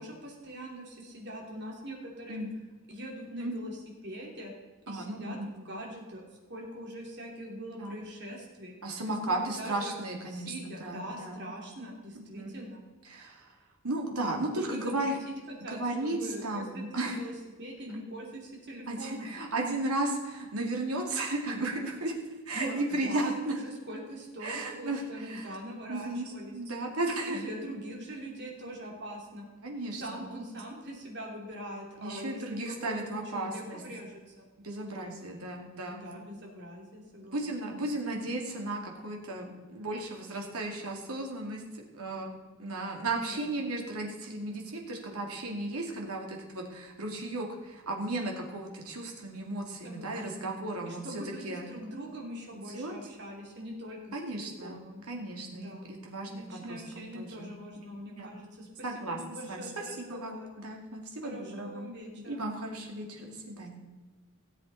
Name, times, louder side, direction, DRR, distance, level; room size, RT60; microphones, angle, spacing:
voice 1, 0.0-2.4 2.9-4.5 4.9-8.7 9.0-9.9 10.3-12.8 14.5-15.1 15.5-17.3 17.6-19.3 22.5-22.7 23.0-26.5 27.3-29.4 29.9-34.5 34.9-35.2 35.9-37.7 43.2-43.5 49.8-50.5 50.8-55.0 55.5-55.9 56.2-60.5 61.2-62.4, equal, 50° right, -1 dB, 3.0 m, -42 dB
voice 2, 4.9-5.5 7.8-8.0 8.8-11.4 12.3-12.5 13.1-13.5 13.8-15.2 15.7-17.2 18.9-22.2 22.5-23.6 24.4-25.6 25.9-27.4 29.6-30.3 32.0-33.8 34.6-36.2 37.3-51.7 52.5-52.9 54.1-57.5 58.1-58.3 58.8-59.2 59.5-59.7 60.0-61.9 62.3-63.8, right 2 dB, 90° right, 0 dB, 2.3 m, -35 dB
17.0 x 7.8 x 4.2 m, 1.3 s
head